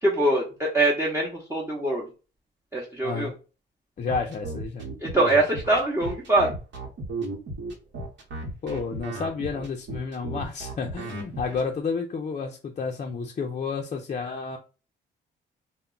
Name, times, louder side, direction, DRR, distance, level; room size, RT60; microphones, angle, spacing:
voice 1, 0.0-2.1 2.7-3.3 5.0-6.5, right 2 dB, 15° right, -4 dB, 0.7 m, -23 dB
voice 2, 3.0-3.3 4.0-4.8 8.6-14.6, left 5 dB, 35° left, 2 dB, 0.5 m, -31 dB
sound 1, 4.1-11.6, right 2 dB, 70° right, 0.9 m, -34 dB
2.2 x 2.1 x 3.7 m, 0.33 s
cardioid pair, 90°, 20 cm